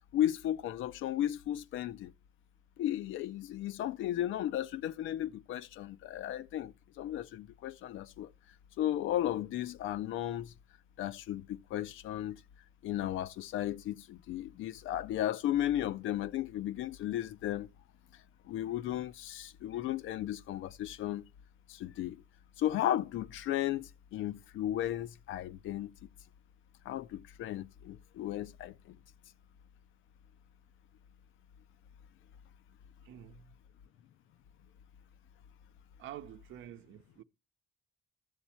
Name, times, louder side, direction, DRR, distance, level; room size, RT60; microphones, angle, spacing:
voice 1, 0.1-2.1 2.8-8.3 8.8-10.5 11.0-12.4 12.8-17.7 18.5-21.2 21.7-22.2 22.6-25.9 26.9-29.0, left 12 dB, 85° left, 0.5 m, -35 dB
voice 2, 33.0-33.5 36.0-37.2, right 11 dB, 80° right, 0.7 m, -48 dB
12.5 x 7.1 x 4.3 m
cardioid pair, 90°, 20 cm